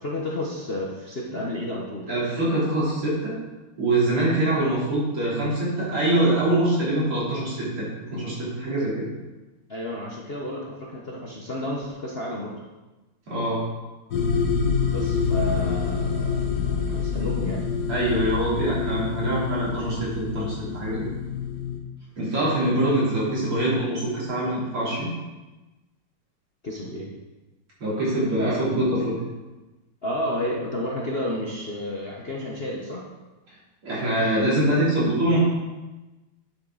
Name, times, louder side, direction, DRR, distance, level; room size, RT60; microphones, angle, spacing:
voice 1, 0.0-2.3 9.7-12.6 14.9-17.7 26.6-27.1 30.0-33.1, left 1 dB, 40° left, -3 dB, 0.9 m, -31 dB
voice 2, 2.1-3.3 3.8-9.1 13.3-13.6 17.9-21.1 22.2-25.1 27.8-29.2 33.8-35.4, right 1 dB, 80° right, -8 dB, 4.5 m, -24 dB
sound 1, 14.1-21.8, left 5 dB, 55° left, 1.4 m, -27 dB
10.0 x 7.5 x 4.0 m, 1.1 s
omnidirectional pair, 2.3 m